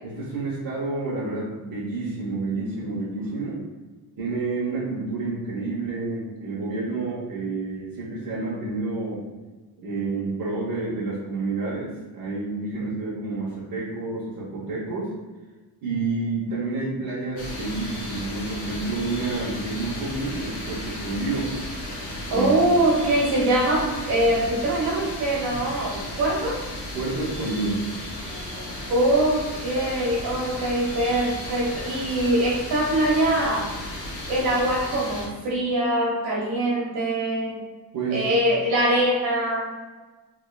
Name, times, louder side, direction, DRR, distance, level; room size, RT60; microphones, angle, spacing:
voice 1, 0.0-3.6 4.2-9.2 9.8-15.1 15.8-21.5 22.3-22.5 25.5-25.6 26.9-27.8 37.9-38.2, right 3 dB, 65° right, -8 dB, 1.0 m, -29 dB
sound 1, 17.4-35.3, left 1 dB, 55° left, 1.1 m, -35 dB
voice 2, 22.3-26.6 28.3-33.7 34.3-37.6 38.1-39.7, right 1 dB, 80° right, -5 dB, 1.4 m, -23 dB
3.5 x 3.2 x 2.3 m, 1.2 s
cardioid pair, 115°, 37 cm